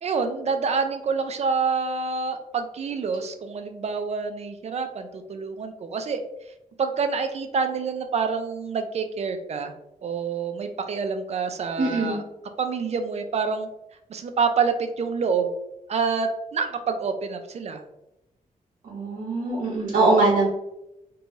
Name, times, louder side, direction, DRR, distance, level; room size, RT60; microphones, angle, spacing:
voice 1, 0.0-6.2 6.8-9.7 10.0-12.2 12.6-13.7 14.1-15.5 15.9-17.8, right 5 dB, 50° right, 7 dB, 0.4 m, -27 dB
voice 2, 11.8-12.2 18.8-20.5, right 3 dB, 70° right, -4 dB, 0.8 m, -22 dB
2.6 x 2.2 x 2.9 m, 0.86 s
wide cardioid pair, 115°, 14 cm